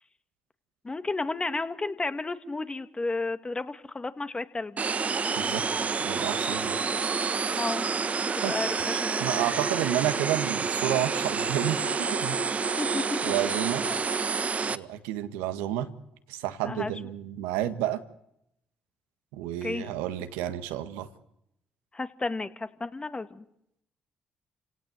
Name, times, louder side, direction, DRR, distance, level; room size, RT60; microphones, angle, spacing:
voice 1, 0.8-4.8 7.5-7.8 8.3-9.4 12.8-13.2 13.9-14.0 16.6-16.9 19.6-19.9 21.9-23.4, left 3 dB, 25° left, 10 dB, 2.2 m, -32 dB
sound 1, 4.8-14.8, right 5 dB, 40° right, 1.5 m, -28 dB
voice 2, 6.0-6.8 8.4-8.6 9.2-12.4 13.2-13.8 14.7-15.9 16.3-18.0 19.3-21.1, right 12 dB, 90° right, 10 dB, 1.7 m, -30 dB
30.0 x 17.5 x 8.0 m, 0.79 s
hypercardioid pair, 55°, 4 cm